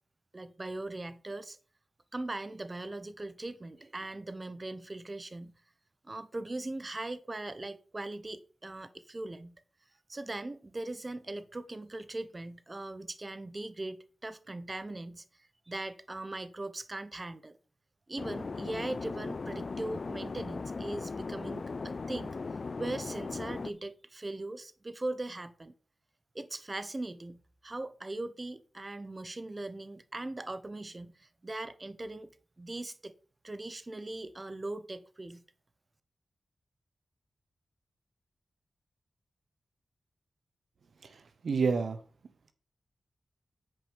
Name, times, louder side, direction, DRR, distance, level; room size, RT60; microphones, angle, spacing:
voice 1, 0.3-1.6 2.1-5.5 6.0-9.6 10.1-15.2 15.7-17.6 18.1-22.4 22.8-25.7 26.3-32.3 32.6-33.1 33.4-35.4, right 2 dB, 35° right, 0.9 m, -40 dB
sound 1, 18.2-23.7, left 4 dB, 55° left, 0.4 m, -38 dB
voice 2, 41.0-42.0, right 5 dB, 75° right, 0.8 m, -30 dB
9.3 x 5.2 x 5.0 m
cardioid pair, 45°, 0 cm